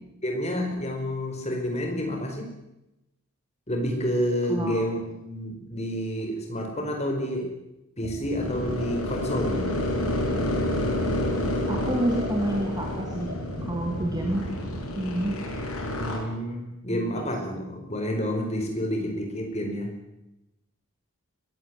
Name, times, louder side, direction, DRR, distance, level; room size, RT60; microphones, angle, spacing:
voice 1, 0.2-2.5 3.7-7.5 8.0-9.7 15.9-19.9, equal, 30° left, 3 dB, 4.9 m, -29 dB
voice 2, 4.5-4.8 11.7-13.3 13.6-14.5 15.0-15.4 17.1-17.2, right 1 dB, 15° right, 1 dB, 2.4 m, -28 dB
sound 1, 8.0-14.8, right 1 dB, 50° right, 3.5 m, -39 dB
sound 2, 8.4-16.2, left 1 dB, 75° left, 6.4 m, -29 dB
22.0 x 16.0 x 9.6 m, 0.93 s
head